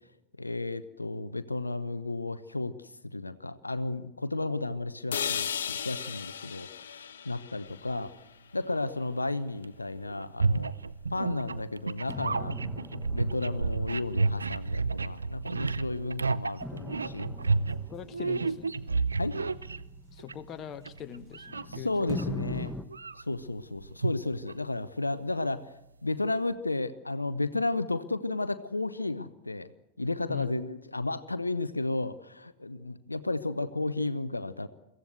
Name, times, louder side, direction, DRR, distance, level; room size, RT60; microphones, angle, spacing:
voice 1, 0.4-8.1 8.5-10.7 11.1-12.6 13.1-17.3 18.2-18.3 19.2-19.4 21.7-22.7 23.2-25.7 26.0-29.7 30.0-34.7, left 2 dB, 80° left, 14 dB, 0.7 m, -33 dB
sound 1, 5.1-9.1, left 8 dB, 65° left, 1.1 m, -36 dB
sound 2, 7.7-8.1 9.6-9.7 10.0-20.5 20.8-22.2 22.7-24.7, right 4 dB, 75° right, 0.6 m, -31 dB
sound 3, 12.1-15.8 16.6-21.6 22.1-22.9, left 1 dB, 5° left, 1.1 m, -42 dB
voice 2, 17.9-18.7 20.1-22.2 30.3-30.5, left 9 dB, 30° left, 11 dB, 1.2 m, -42 dB
23.0 x 15.5 x 8.0 m, 0.95 s
figure-of-eight pair, 90°, 0 cm